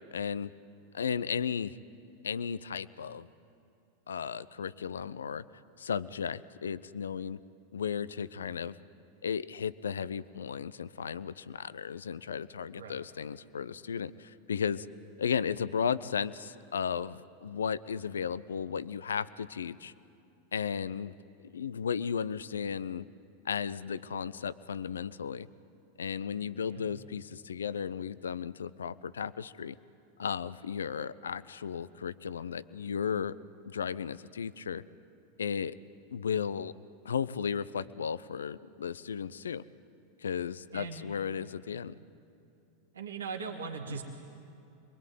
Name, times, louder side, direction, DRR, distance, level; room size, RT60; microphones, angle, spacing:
voice 1, 0.1-0.5 0.9-1.8 2.2-3.3 4.1-5.4 5.8-7.4 7.7-8.8 9.2-14.9 15.2-19.9 20.5-21.1 21.4-23.1 23.4-25.5 26.0-29.8 30.2-33.3 33.6-34.8 35.4-35.8 36.1-36.7 37.0-39.6 40.2-41.9, left 7 dB, 80° left, 17 dB, 0.6 m, -35 dB
voice 2, 12.8-13.1 26.7-26.9 40.7-41.1 42.9-44.0, right 5 dB, 85° right, 1 dB, 2.0 m, -39 dB
26.5 x 22.5 x 9.3 m, 2.7 s
hypercardioid pair, 95°, 0 cm